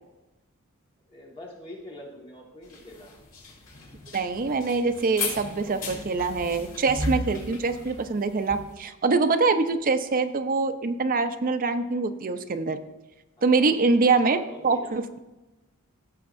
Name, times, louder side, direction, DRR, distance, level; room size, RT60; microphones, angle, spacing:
voice 1, 1.1-3.1 10.0-10.1 13.4-15.0, left 1 dB, 25° left, -2 dB, 1.6 m, -44 dB
sound 1, 2.7-8.7, left 2 dB, 65° left, 2.8 m, -35 dB
voice 2, 4.1-12.8 13.4-14.4 14.6-15.2, right 4 dB, 40° right, 8 dB, 0.6 m, -24 dB
16.5 x 7.0 x 2.6 m, 1.1 s
head